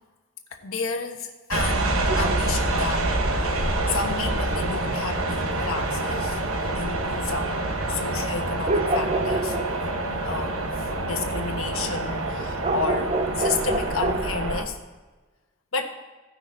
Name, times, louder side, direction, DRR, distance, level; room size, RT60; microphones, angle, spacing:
voice 1, 0.5-3.1 3.9-7.6 7.9-9.6 10.2-10.7 11.0-14.8 15.7-16.0, left 4 dB, 75° left, 3 dB, 1.3 m, -31 dB
sound 1, 1.5-14.6, right 2 dB, 75° right, 1.1 m, -27 dB
sound 2, 2.1-3.2 3.7-7.1 7.5-11.6 12.1-14.3, right 2 dB, 30° right, 0.5 m, -28 dB
16.0 x 6.0 x 4.0 m, 1.3 s
head